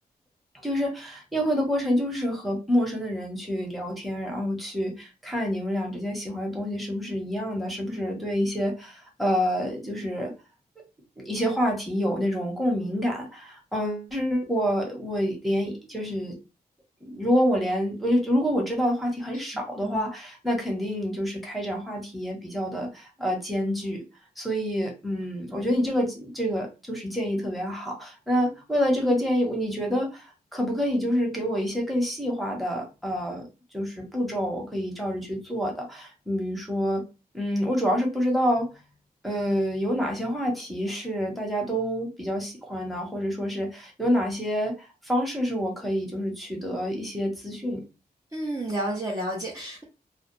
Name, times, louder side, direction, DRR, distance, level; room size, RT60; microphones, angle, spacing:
voice 1, 0.6-10.3 11.2-16.4 17.0-24.0 24.4-33.5 33.7-37.0 37.3-38.7 39.2-47.8, equal, ahead, 0 dB, 1.0 m, -27 dB
voice 2, 48.3-49.8, right 1 dB, 20° right, -3 dB, 0.7 m, -31 dB
2.3 x 2.0 x 3.0 m, 0.29 s
cardioid pair, 60°, 16 cm